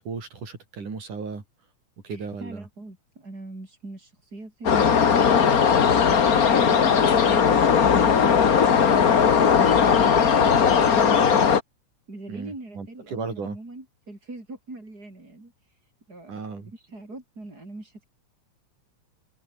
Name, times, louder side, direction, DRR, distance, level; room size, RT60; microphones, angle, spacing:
voice 1, 0.0-1.4 2.0-2.7 12.3-13.6 16.3-16.7, right 5 dB, 90° right, 6.8 m, -35 dB
voice 2, 2.1-5.2 5.8-11.5 12.1-16.4 16.7-18.0, right 2 dB, 30° right, 6.9 m, -42 dB
sound 1, 4.6-11.6, left 7 dB, 40° left, 1.3 m, -18 dB
omnidirectional pair, 3.5 m